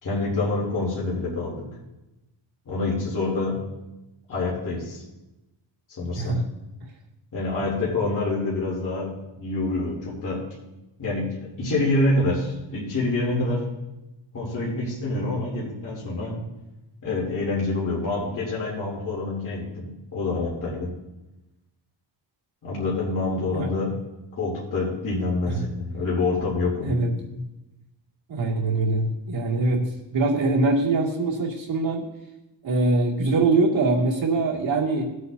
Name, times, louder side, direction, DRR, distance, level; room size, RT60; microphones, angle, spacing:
voice 1, 0.0-1.7 2.6-3.6 4.3-5.0 5.9-6.4 7.3-10.4 11.0-13.7 14.3-16.4 17.0-20.9 22.6-24.0 24.3-27.0, left 2 dB, 45° left, -6 dB, 3.0 m, -26 dB
voice 2, 23.4-23.7 26.8-27.4 28.3-32.1 32.6-35.0, right 3 dB, 70° right, -3 dB, 2.5 m, -23 dB
18.0 x 8.2 x 2.7 m, 0.99 s
wide cardioid pair, 145°, 46 cm